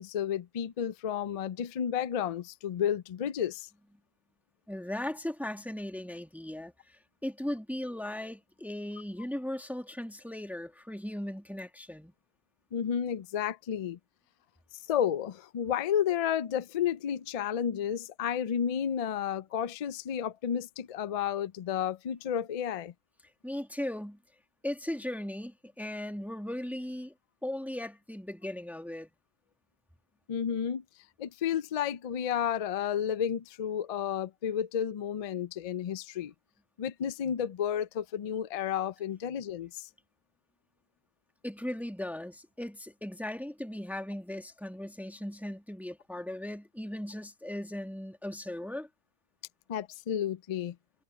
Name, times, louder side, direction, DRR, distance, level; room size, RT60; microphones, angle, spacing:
voice 1, 0.0-3.7 12.7-14.0 14.9-22.9 30.3-30.8 31.2-36.3 36.8-39.9 49.7-50.8, left 9 dB, 65° left, 0.3 m, -31 dB
voice 2, 4.7-12.1 23.4-24.2 24.6-27.1 27.4-29.1 41.4-48.9, left 1 dB, ahead, 1.7 m, -37 dB
omnidirectional pair, 1.2 m